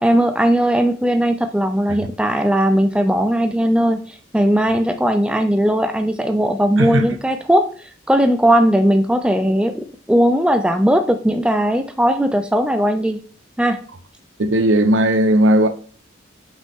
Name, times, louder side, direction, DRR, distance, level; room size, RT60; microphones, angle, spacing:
voice 1, 0.0-7.7 8.1-13.2 13.6-13.8, equal, 5° right, 0.4 m, -18 dB
voice 2, 6.8-7.1 14.4-15.7, right 1 dB, 75° right, 0.9 m, -16 dB
5.8 x 5.4 x 3.6 m
head